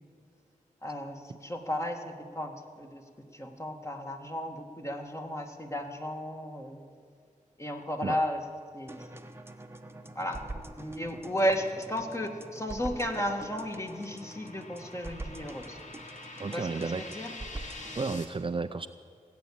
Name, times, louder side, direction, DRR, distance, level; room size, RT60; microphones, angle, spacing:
voice 1, 0.8-3.0 3.3-6.8 7.6-8.4 8.7-9.0 10.2-10.5 10.8-15.8 16.5-17.3, equal, 20° left, 3 dB, 2.0 m, -34 dB
sound 1, 8.9-18.3, right 2 dB, 15° right, 1.0 m, -45 dB
sound 2, 11.7-18.2, left 2 dB, 55° left, 2.0 m, -47 dB
voice 2, 16.4-17.0 18.0-18.9, right 4 dB, 35° right, 10 dB, 0.5 m, -32 dB
18.5 x 8.5 x 8.8 m, 2.2 s
cardioid pair, 60°, 15 cm